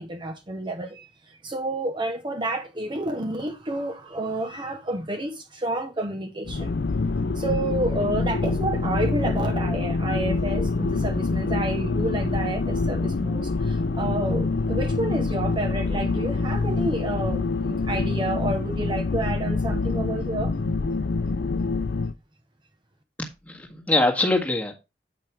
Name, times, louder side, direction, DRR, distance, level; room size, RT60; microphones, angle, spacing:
voice 1, 0.0-6.7 7.3-20.5, right 1 dB, 25° right, 0.9 m, -30 dB
sound 1, 6.5-22.1, left 3 dB, 65° left, 0.5 m, -26 dB
voice 2, 23.2-24.7, left 2 dB, 10° left, 1.7 m, -23 dB
8.7 x 5.4 x 4.6 m
head